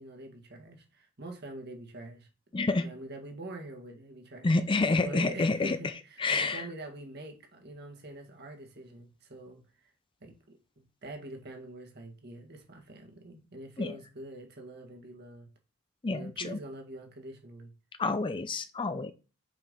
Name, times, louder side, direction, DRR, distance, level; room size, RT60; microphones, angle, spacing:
voice 1, 0.0-2.3 2.8-4.6 5.0-9.9 10.2-15.5 16.1-17.7, right 2 dB, 55° right, 1.8 m, -45 dB
voice 2, 2.5-2.9 4.4-5.8 6.2-6.7 13.8-14.0 16.0-16.6 18.0-19.1, left 3 dB, 25° left, 0.5 m, -28 dB
6.0 x 4.6 x 5.3 m
head